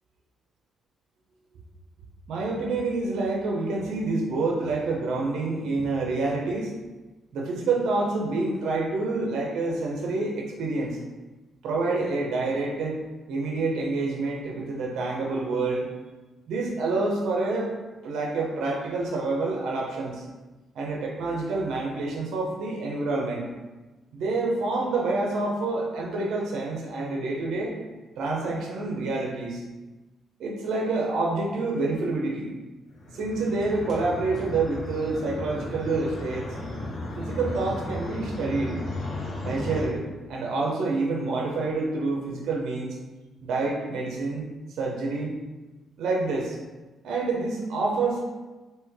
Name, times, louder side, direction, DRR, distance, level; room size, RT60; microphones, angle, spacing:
voice 1, 2.3-6.7 7.3-11.0 11.6-13.0 13.3-15.9 16.5-17.7 18.0-20.2 20.7-23.5 24.1-27.7 28.2-29.6 30.4-32.5 33.1-36.5 37.2-38.8 39.4-43.0 43.4-44.5 44.8-45.4 46.0-46.6 47.0-48.2, right 3 dB, 75° right, -1 dB, 0.6 m, -27 dB
sound 1, 32.9-39.9, left 1 dB, 65° left, 1.2 m, -34 dB
3.1 x 2.8 x 3.4 m, 1.2 s
supercardioid pair, 60°, 0 cm